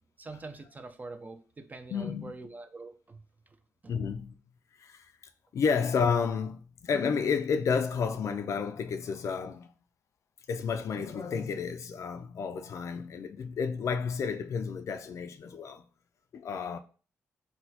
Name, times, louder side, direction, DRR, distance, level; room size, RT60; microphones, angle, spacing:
voice 1, 0.2-3.2 3.8-3.9, right 3 dB, 30° right, 0.4 m, -44 dB
voice 2, 1.9-2.3 3.9-4.4 4.8-5.1 5.5-9.7 10.5-15.9 16.3-16.8, left 6 dB, 65° left, 0.4 m, -31 dB
4.0 x 2.1 x 2.8 m
cardioid pair, 60°, 6 cm